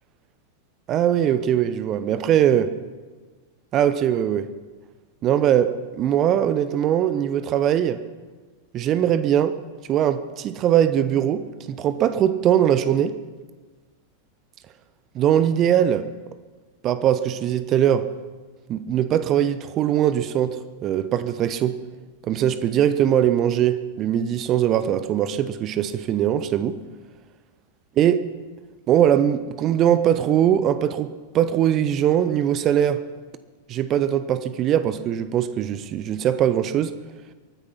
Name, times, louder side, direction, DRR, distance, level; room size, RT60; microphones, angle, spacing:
voice 1, 0.9-2.7 3.7-4.5 5.2-8.0 8.7-9.6 9.9-13.2 15.1-16.1 16.8-18.1 18.7-21.8 22.3-26.8 28.0-28.2 28.9-33.0 33.7-37.0, right 10 dB, 35° right, 13 dB, 0.7 m, -21 dB
23.5 x 9.8 x 5.8 m, 1.4 s
figure-of-eight pair, 90°, 0 cm